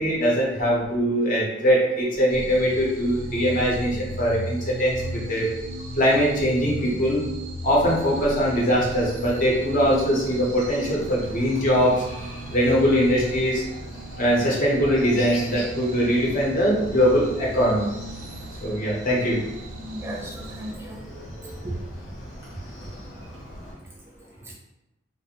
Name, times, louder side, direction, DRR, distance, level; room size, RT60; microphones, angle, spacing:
voice 1, 0.0-5.5 6.0-7.2 7.6-12.0 12.5-13.6 14.2-17.9 18.6-19.4, equal, 45° left, -3 dB, 0.6 m, -22 dB
sound 1, 2.3-20.8, right 1 dB, 85° right, 0.3 m, -37 dB
Chicken rooster, 7.8-23.7, equal, 85° left, 0.9 m, -41 dB
voice 2, 19.9-21.8, right 1 dB, 10° right, -2 dB, 0.4 m, -36 dB
2.4 x 2.0 x 2.8 m, 0.93 s
head